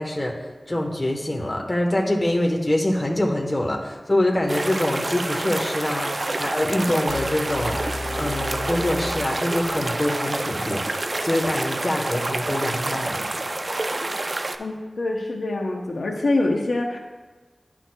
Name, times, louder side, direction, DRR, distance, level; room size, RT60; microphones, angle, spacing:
voice 1, 0.0-7.9 8.2-13.3, left 1 dB, 30° left, 0 dB, 1.0 m, -25 dB
sound 1, 4.5-14.6, right 2 dB, 45° right, 0.4 m, -28 dB
sound 2, 7.1-10.1, left 2 dB, 60° left, 1.5 m, -34 dB
voice 2, 14.6-17.0, left 2 dB, 90° left, 2 dB, 0.6 m, -25 dB
11.0 x 6.1 x 2.2 m, 1.3 s
wide cardioid pair, 80°, 0 cm